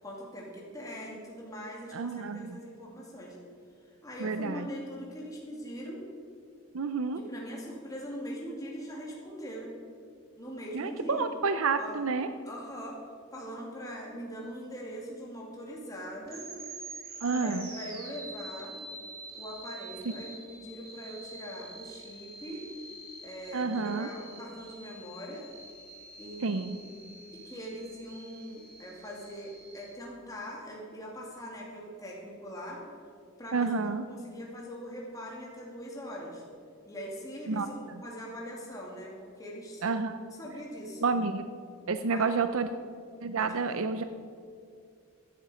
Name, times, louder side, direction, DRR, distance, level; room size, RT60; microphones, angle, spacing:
voice 1, 0.0-3.4 4.0-6.0 7.1-9.7 10.4-11.2 11.8-12.0 12.5-13.0 13.3-16.5 17.3-18.8 19.4-22.7 23.2-25.5 26.2-26.9 27.3-32.8 33.4-33.7 34.1-36.4 36.9-39.8 40.3-41.0 42.0-42.3 43.4-43.9, equal, 15° left, -3 dB, 2.5 m, -42 dB
voice 2, 1.9-2.6 4.2-4.7 6.7-7.2 10.7-12.3 17.2-17.7 23.5-24.1 26.4-26.8 33.5-34.0 37.5-37.7 39.8-40.2 41.0-41.5 41.9-42.7 43.2-44.0, right 4 dB, 70° right, 10 dB, 0.6 m, -29 dB
sound 1, 16.2-29.9, right 2 dB, 45° right, 3.0 m, -47 dB
15.5 x 11.0 x 5.1 m, 2.3 s
head